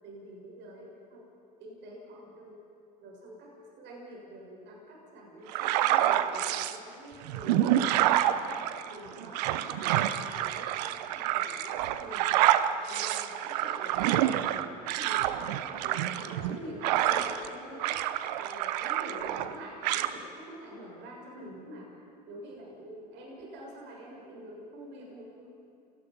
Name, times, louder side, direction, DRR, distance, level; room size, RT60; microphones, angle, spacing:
voice 1, 0.0-1.3 1.6-2.6 3.0-12.3 12.9-18.0 18.4-21.9 22.3-25.4, right 1 dB, 60° right, -2 dB, 7.1 m, -46 dB
sound 1, 5.5-6.8 7.3-17.5 17.8-19.5 19.8-20.1, right 12 dB, 75° right, 1.0 m, -28 dB
29.0 x 18.5 x 5.5 m, 2.7 s
hypercardioid pair, 75°, 21 cm